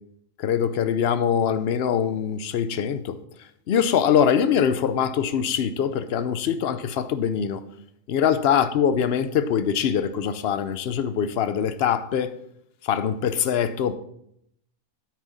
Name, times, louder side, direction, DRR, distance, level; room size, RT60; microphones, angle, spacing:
voice 1, 0.4-3.2 3.7-7.6 8.1-12.3 12.8-14.0, left 8 dB, 60° left, 0.7 m, -23 dB
9.6 x 8.5 x 4.1 m
omnidirectional pair, 1.6 m